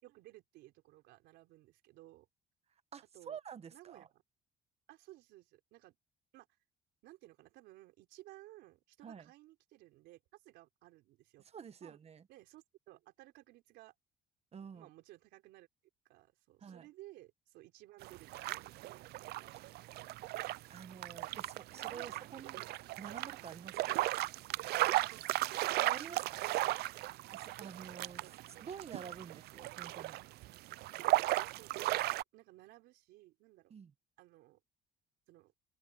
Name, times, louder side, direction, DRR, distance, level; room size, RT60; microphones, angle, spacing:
voice 1, 0.0-2.3 3.1-3.4 3.7-4.2 4.9-6.0 6.3-6.5 7.0-11.4 11.8-12.0 12.3-13.9 14.7-15.7 16.0-19.5 21.7-22.5 24.8-25.5 28.2-28.5 29.2-29.4 31.6-33.7 34.2-34.6 35.3-35.5, right 17 dB, 90° right, 4.3 m, -58 dB
voice 2, 2.9-4.1 9.0-9.3 11.4-12.3 14.5-14.9 16.6-16.9 20.7-22.6 23.0-24.0 25.8-26.4 27.3-28.2 28.6-30.2 33.7-33.9, right 7 dB, 40° right, 1.4 m, -49 dB
sound 1, 18.0-32.2, right 17 dB, 75° right, 0.4 m, -36 dB
cardioid pair, 110°, 17 cm